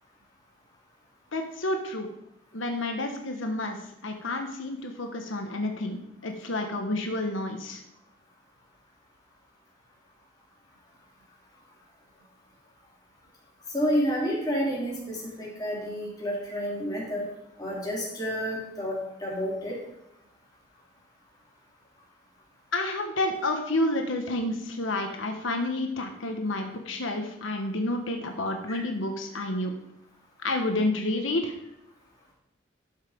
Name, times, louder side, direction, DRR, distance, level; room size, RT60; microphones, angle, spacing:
voice 1, 1.3-2.1 2.5-3.8 4.0-7.8 22.7-29.7 30.4-31.5, left 2 dB, 90° left, 4 dB, 1.2 m, -29 dB
voice 2, 13.7-17.2 17.6-19.8 28.7-28.8, equal, 20° left, -5 dB, 3.3 m, -30 dB
12.0 x 5.8 x 5.1 m, 0.82 s
head